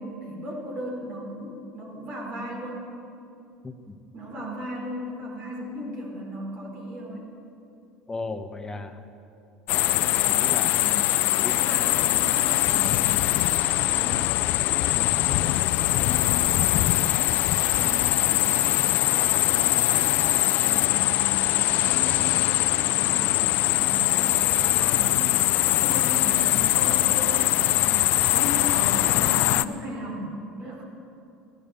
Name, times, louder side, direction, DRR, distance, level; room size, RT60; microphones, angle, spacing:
voice 1, 0.0-2.9 4.1-7.3 9.8-14.2 15.9-17.1 17.7-18.6 19.0-23.3 23.6-25.4 25.6-27.9 28.3-30.8, equal, 50° right, -2 dB, 4.4 m, -36 dB
voice 2, 3.6-4.0 8.1-9.0 10.1-10.9 11.4-11.6 14.9-15.5, left 3 dB, 20° left, 8 dB, 1.3 m, -36 dB
sound 1, 9.7-29.6, left 16 dB, 60° left, 0.5 m, -22 dB
16.5 x 12.5 x 6.9 m, 2.6 s
hypercardioid pair, 80°, 3 cm